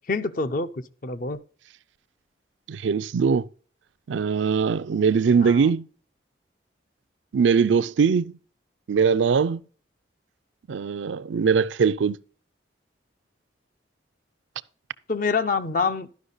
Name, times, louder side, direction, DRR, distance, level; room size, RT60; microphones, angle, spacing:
voice 1, 0.1-1.4 5.4-5.7 15.1-16.1, left 4 dB, 45° left, 0.5 m, -26 dB
voice 2, 2.7-3.5 4.1-5.9 7.3-8.3 8.9-9.6 10.7-12.2, right 6 dB, 80° right, 0.4 m, -21 dB
11.5 x 5.6 x 3.9 m
head